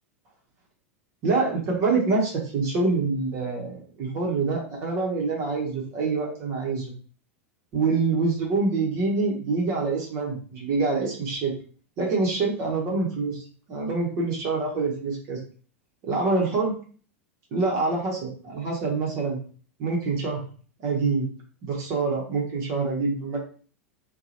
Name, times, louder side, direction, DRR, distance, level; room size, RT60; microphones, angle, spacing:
voice 1, 1.2-6.9 7.7-11.5 12.0-13.4 13.7-15.4 16.0-16.7 17.5-19.4 19.8-20.4 20.8-21.3 21.6-23.4, right 3 dB, 40° right, -2 dB, 0.8 m, -26 dB
2.8 x 2.2 x 2.7 m, 0.42 s
figure-of-eight pair, 90°, 7 cm